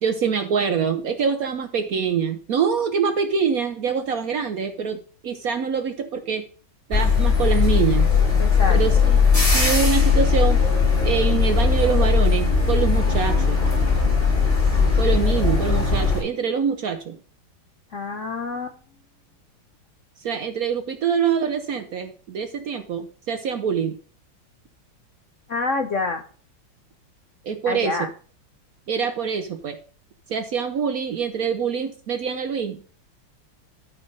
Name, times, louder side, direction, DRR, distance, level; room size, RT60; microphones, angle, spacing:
voice 1, 0.0-6.5 6.9-8.1 8.7-10.6 11.0-13.6 15.0-17.2 20.2-24.0 27.4-28.0 28.9-29.8 30.3-32.9, right 6 dB, 60° right, 8 dB, 1.0 m, -25 dB
sound 1, 6.9-16.2, left 5 dB, 30° left, 5.2 m, -19 dB
voice 2, 8.4-9.1 17.9-18.8 25.5-26.2 27.7-28.1, left 3 dB, 60° left, 6 dB, 0.8 m, -27 dB
12.5 x 4.4 x 5.2 m, 0.42 s
omnidirectional pair, 2.1 m